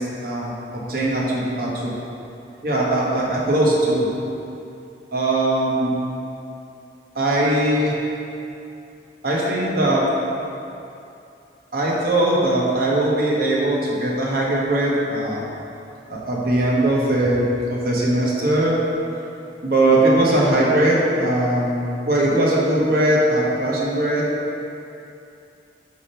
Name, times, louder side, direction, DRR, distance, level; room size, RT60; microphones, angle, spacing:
voice 1, 0.0-1.9 2.6-4.1 5.1-5.9 7.1-8.0 9.2-10.1 11.7-15.4 16.1-17.4 17.7-18.8 19.6-24.2, right 1 dB, 50° right, -4 dB, 1.1 m, -20 dB
6.5 x 3.6 x 4.3 m, 2.7 s
head